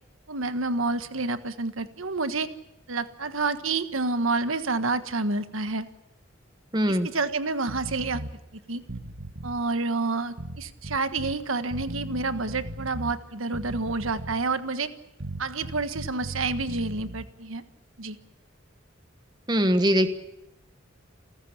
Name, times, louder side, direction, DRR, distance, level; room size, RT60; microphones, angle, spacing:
voice 1, 0.3-2.5 2.9-5.9 6.9-8.2 8.5-8.8 9.4-14.9 15.4-17.6 18.0-18.2, right 3 dB, 90° right, 10 dB, 1.4 m, -29 dB
voice 2, 6.7-7.1 19.5-20.1, equal, 20° right, 9 dB, 1.3 m, -21 dB
sound 1, 7.7-8.3 8.8-9.6 10.4-11.4 11.7-13.2 13.5-14.5 15.2-17.3, right 1 dB, 60° right, 1.6 m, -37 dB
29.0 x 14.0 x 8.7 m, 0.89 s
head